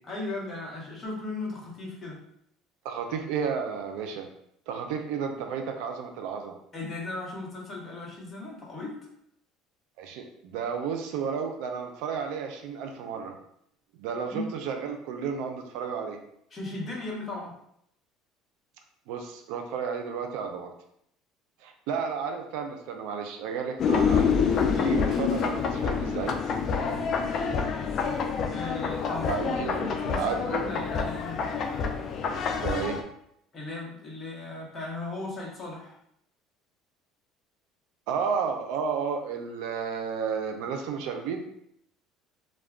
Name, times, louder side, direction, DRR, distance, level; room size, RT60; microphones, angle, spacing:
voice 1, 0.0-2.2 6.7-8.9 14.3-14.5 16.5-17.5 24.7-25.0 28.5-31.4 33.5-36.0, left 2 dB, 30° left, -3 dB, 0.9 m, -37 dB
voice 2, 2.8-4.3 4.7-6.6 10.0-13.4 13.9-16.2 19.1-20.7 21.6-24.4 24.8-26.4 29.3-30.7 32.6-33.0 38.1-41.4, right 6 dB, 80° right, 4 dB, 0.4 m, -32 dB
sound 1, 23.8-33.0, left 6 dB, 45° left, 0.3 m, -27 dB
2.3 x 2.1 x 3.4 m, 0.73 s
cardioid pair, 120°, 0 cm